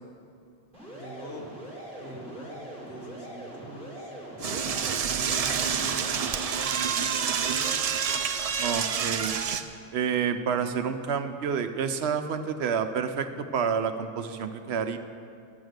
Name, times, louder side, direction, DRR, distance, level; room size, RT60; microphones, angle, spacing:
sound 1, 0.7-6.6, right 1 dB, 5° left, 3.0 m, -42 dB
voice 1, 0.9-1.5 2.0-4.8 5.4-6.8 7.2-7.8, left 1 dB, 70° left, 1 dB, 1.5 m, -45 dB
Door / Toilet flush, 4.4-9.6, right 7 dB, 55° right, 0.4 m, -28 dB
voice 2, 8.6-9.4 9.9-15.0, right 7 dB, 75° right, 9 dB, 0.9 m, -29 dB
11.0 x 7.2 x 6.5 m, 2.4 s
omnidirectional pair, 1.1 m